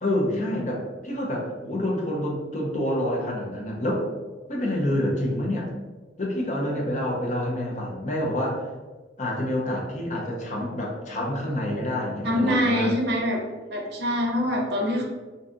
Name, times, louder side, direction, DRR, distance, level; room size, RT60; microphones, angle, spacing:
voice 1, 0.0-4.1 4.5-5.7 6.2-8.7 9.2-12.9, left 1 dB, 40° left, -2 dB, 0.6 m, -27 dB
voice 2, 12.2-13.4 13.7-15.0, equal, 60° right, 0 dB, 0.6 m, -24 dB
2.6 x 2.3 x 3.7 m, 1.3 s
head